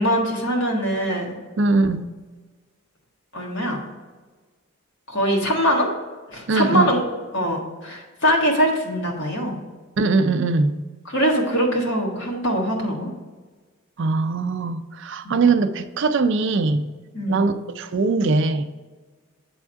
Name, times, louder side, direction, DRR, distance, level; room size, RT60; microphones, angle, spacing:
voice 1, 0.0-1.4 3.3-3.8 5.1-5.9 6.3-7.1 7.3-9.6 11.1-13.1 15.2-15.3 17.1-17.5, equal, 55° left, 0 dB, 1.5 m, -22 dB
voice 2, 1.6-2.1 6.5-6.9 10.0-10.8 14.0-16.8 17.3-18.6, right 3 dB, 55° right, 9 dB, 0.4 m, -21 dB
8.7 x 3.5 x 4.5 m, 1.3 s
head